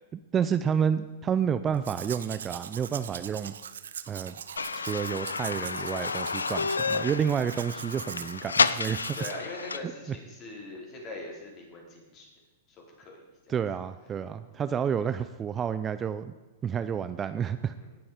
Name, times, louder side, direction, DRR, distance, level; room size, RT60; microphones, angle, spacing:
voice 1, 0.3-3.5 4.1-4.3 4.7-9.2 9.8-9.9 13.5-16.3 16.6-17.7, right 7 dB, 25° right, 12 dB, 0.5 m, -29 dB
Domestic sounds home sounds, 1.7-9.3, right 8 dB, 75° right, 0.7 m, -42 dB
sound 1, 4.6-9.8, left 4 dB, 90° left, 0.5 m, -30 dB
voice 2, 9.1-12.3 13.0-13.2 14.4-14.5 17.8-17.9, left 2 dB, 35° left, -1 dB, 4.4 m, -41 dB
18.5 x 7.1 x 5.0 m, 1.2 s
hypercardioid pair, 110°, 0 cm